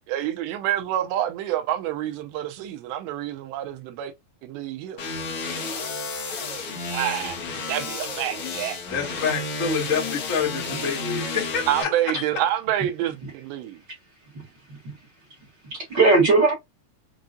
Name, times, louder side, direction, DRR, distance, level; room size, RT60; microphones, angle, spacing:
voice 1, 0.1-4.1 4.4-5.0 6.9-7.4 7.7-8.8 11.7-13.8, right 12 dB, 90° right, 2.9 m, -27 dB
sound 1, 5.0-11.8, left 3 dB, 75° left, 1.3 m, -31 dB
voice 2, 8.9-11.9, left 6 dB, 50° left, 0.9 m, -27 dB
voice 3, 14.3-15.0 15.7-16.5, right 3 dB, 50° right, 1.3 m, -20 dB
7.1 x 2.4 x 2.6 m
omnidirectional pair, 4.9 m